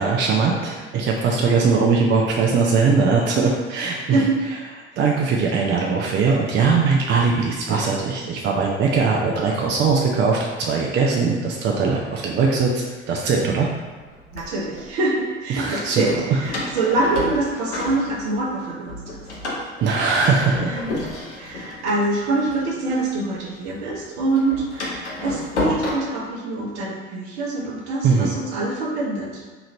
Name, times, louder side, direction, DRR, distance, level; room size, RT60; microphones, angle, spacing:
voice 1, 0.0-4.2 5.0-12.7 13.1-13.7 15.5-16.0 16.3-16.4 19.8-20.8 28.0-28.3, right 4 dB, 35° right, -1 dB, 0.5 m, -20 dB
voice 2, 4.0-4.4 14.3-19.2 20.7-21.0 21.3-29.4, right 2 dB, 60° right, -2 dB, 0.9 m, -25 dB
Door, 12.9-13.0 13.7-14.8 16.0-18.6 18.9-23.4 23.7-25.9, left 1 dB, 75° left, 0.7 m, -30 dB
2.9 x 2.5 x 4.2 m, 1.4 s
figure-of-eight pair, 60°, 34 cm